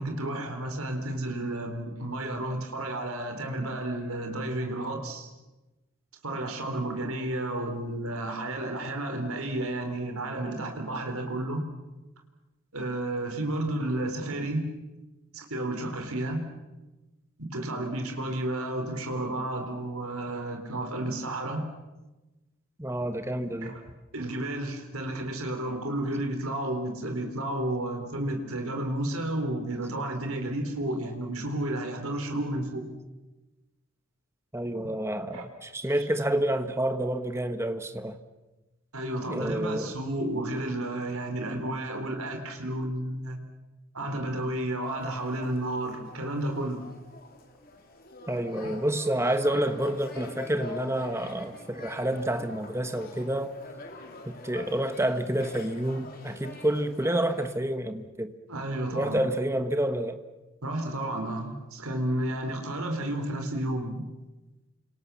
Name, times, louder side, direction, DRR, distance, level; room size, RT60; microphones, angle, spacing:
voice 1, 0.0-5.3 6.2-11.6 12.7-14.7 15.3-16.4 17.5-21.6 23.6-23.8 24.1-32.9 35.3-35.5 35.9-36.1 38.9-43.4 43.9-46.8 58.5-59.2 60.6-64.1, right 1 dB, 80° right, 4.1 m, -32 dB
voice 2, 22.8-23.8 34.5-38.2 39.3-39.9 48.3-53.6 54.2-58.3 58.9-60.2, right 1 dB, 10° right, 1.4 m, -29 dB
sound 1, 44.8-57.5, left 3 dB, 40° left, 3.6 m, -46 dB
29.5 x 26.0 x 7.1 m
head